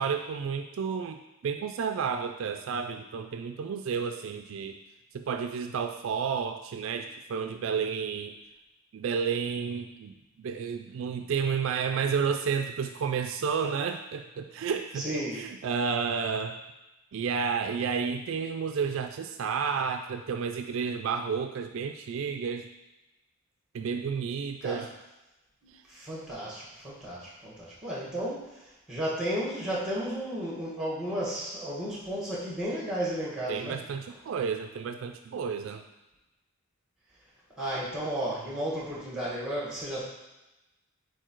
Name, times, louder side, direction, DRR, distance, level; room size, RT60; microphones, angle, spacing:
voice 1, 0.0-4.8 5.1-8.3 8.9-16.6 17.1-22.7 23.7-24.9 25.7-25.8 33.5-35.8, right 6 dB, 65° right, 6 dB, 0.3 m, -31 dB
voice 2, 14.9-15.4 24.6-24.8 25.9-28.5 28.9-33.8 37.6-40.0, right 1 dB, 5° right, -6 dB, 1.7 m, -33 dB
4.6 x 4.6 x 4.5 m, 1.0 s
head